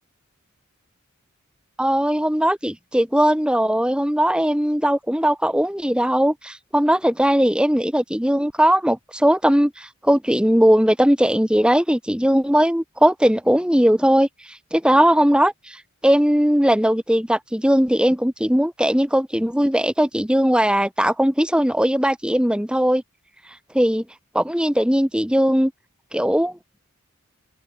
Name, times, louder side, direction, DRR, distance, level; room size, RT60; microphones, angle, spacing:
voice 1, 1.8-14.3 14.7-15.8 16.0-23.0 23.7-24.0 24.3-25.7 26.1-26.5, equal, 5° right, 1.7 m, -19 dB
head